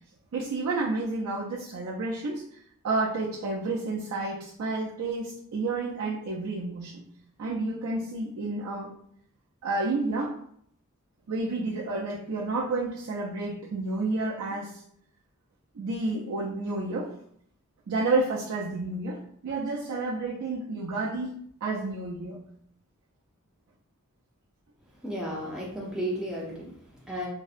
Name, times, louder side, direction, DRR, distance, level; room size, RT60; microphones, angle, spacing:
voice 1, 0.3-2.6 2.8-7.0 7.4-8.9 9.6-10.3 11.3-14.8 15.7-17.1 17.9-21.3 21.6-22.4, right 3 dB, 75° right, -4 dB, 0.4 m, -30 dB
voice 2, 25.0-27.3, equal, 5° right, -4 dB, 0.4 m, -34 dB
2.6 x 2.0 x 2.4 m, 0.65 s
head